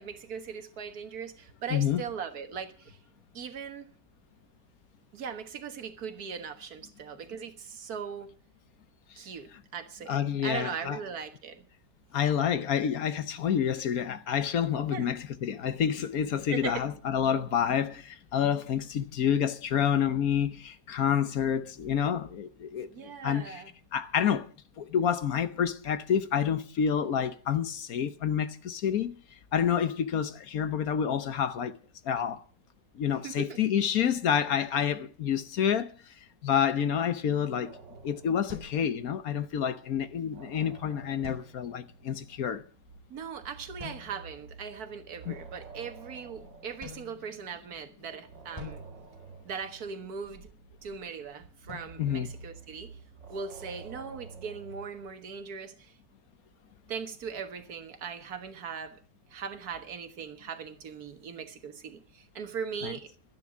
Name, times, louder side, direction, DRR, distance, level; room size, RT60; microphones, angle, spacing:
voice 1, 0.0-3.0 3.3-3.9 5.1-8.3 9.2-11.7 14.9-15.1 16.5-16.8 22.9-23.7 33.2-33.6 43.1-48.8 49.5-50.5 50.8-53.0 53.3-55.9 56.9-59.0 59.3-63.1, right 6 dB, 60° right, 1.8 m, -39 dB
voice 2, 1.7-2.0 10.1-11.0 12.1-23.6 23.9-24.5 24.8-29.2 29.5-31.7 32.0-32.4 32.9-35.9 36.4-37.8 38.0-42.6 45.3-45.4 52.0-52.3 62.8-62.9, left 8 dB, 60° left, 1.3 m, -28 dB
sound 1, 37.7-39.5 39.8-47.7 48.3-55.1, right 4 dB, 80° right, 2.3 m, -50 dB
sound 2, 38.5-39.6 41.2-42.0 43.8-44.5 46.8-47.9 48.6-50.0 51.7-53.2, left 4 dB, 15° left, 4.3 m, -48 dB
12.0 x 10.5 x 7.2 m
omnidirectional pair, 1.9 m